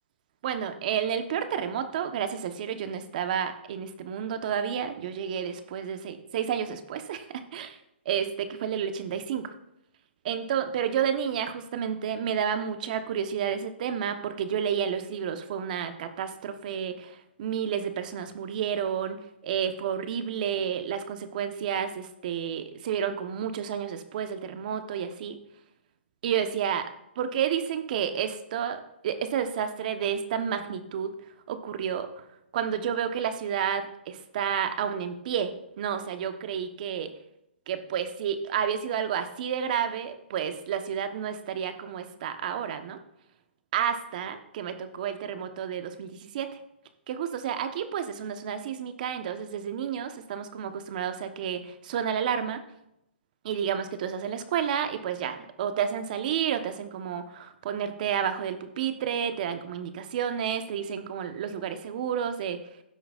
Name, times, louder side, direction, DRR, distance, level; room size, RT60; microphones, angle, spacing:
voice 1, 0.4-7.8 8.0-9.5 10.2-25.4 26.2-26.9 27.2-31.1 31.5-32.1 32.5-37.1 37.7-43.0 43.7-46.5 47.1-52.6 53.4-62.6, right 8 dB, 45° right, 8 dB, 1.1 m, -30 dB
16.0 x 7.7 x 2.5 m, 0.80 s
hypercardioid pair, 150°, 6 cm